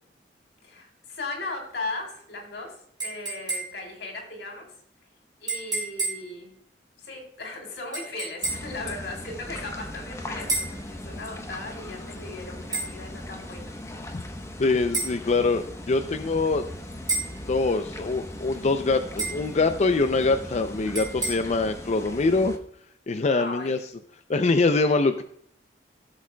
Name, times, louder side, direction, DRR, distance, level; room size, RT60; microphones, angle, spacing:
voice 1, 0.6-4.7 5.4-6.5 7.0-13.7 23.3-23.7, left 2 dB, 90° left, 1 dB, 3.4 m, -37 dB
sound 1, 3.0-3.9 5.5-6.3 7.9-8.8 10.5-10.8 12.7-12.9 14.9-15.2 17.1-17.4 19.2-19.5 20.9-21.3, right 3 dB, 25° right, 4.5 m, -30 dB
sound 2, 8.4-22.6, left 1 dB, 15° left, 1.0 m, -39 dB
voice 2, 14.6-16.6 17.5-22.5 23.1-23.8 24.3-25.2, left 3 dB, 40° left, 8 dB, 0.5 m, -24 dB
15.5 x 7.4 x 2.3 m, 0.66 s
head